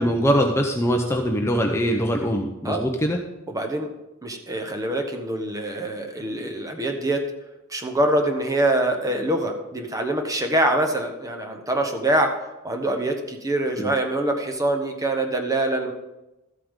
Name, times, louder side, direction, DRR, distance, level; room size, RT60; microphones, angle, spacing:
voice 1, 0.0-3.2 13.8-13.9, equal, 10° left, 2 dB, 0.7 m, -22 dB
voice 2, 3.5-3.9 4.2-7.3 7.7-12.4 12.6-15.9, right 1 dB, 15° right, 4 dB, 1.1 m, -24 dB
13.5 x 8.4 x 3.7 m, 0.99 s
head